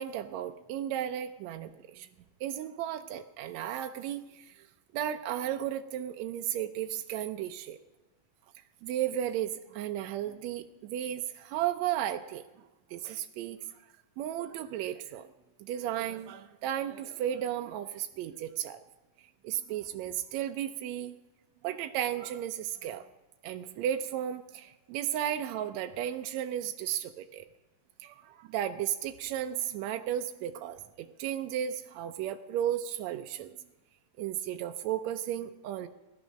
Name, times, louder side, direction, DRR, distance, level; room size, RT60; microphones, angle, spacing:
voice 1, 0.0-2.1 2.4-4.7 4.9-7.8 8.8-12.4 12.9-13.6 14.2-15.3 15.6-18.8 19.4-21.2 21.6-23.0 23.4-27.4 28.0-33.5 34.2-35.9, right 11 dB, 80° right, 7 dB, 1.6 m, -34 dB
17.0 x 12.0 x 6.3 m, 1.1 s
omnidirectional pair, 3.9 m